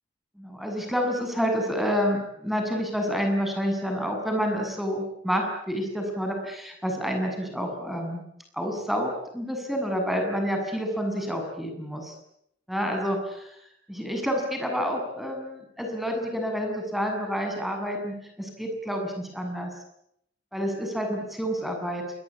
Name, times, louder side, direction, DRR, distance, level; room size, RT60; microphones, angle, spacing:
voice 1, 0.4-8.2 8.5-12.1 12.7-19.7 20.5-22.0, equal, ahead, 3 dB, 7.5 m, -29 dB
28.5 x 22.5 x 8.6 m, 0.75 s
head